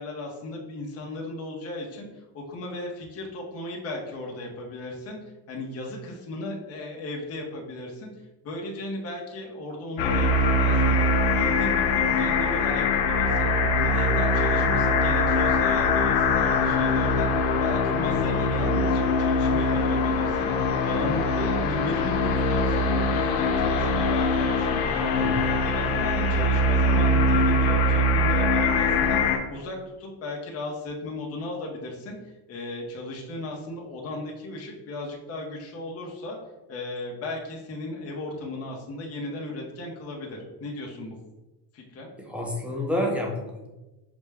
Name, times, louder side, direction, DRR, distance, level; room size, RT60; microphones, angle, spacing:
voice 1, 0.0-8.1 8.4-10.3 10.6-11.1 11.3-13.5 13.8-20.5 20.8-25.2 25.6-32.2 32.5-36.4 36.7-41.2 41.7-42.1, left 1 dB, 30° left, -1 dB, 0.8 m, -36 dB
sound 1, 10.0-29.4, left 2 dB, 80° left, 0.7 m, -22 dB
voice 2, 25.0-25.6 42.3-43.7, left 1 dB, 5° right, -1 dB, 0.4 m, -29 dB
6.0 x 2.1 x 3.4 m, 1.1 s
cardioid pair, 150°, 48 cm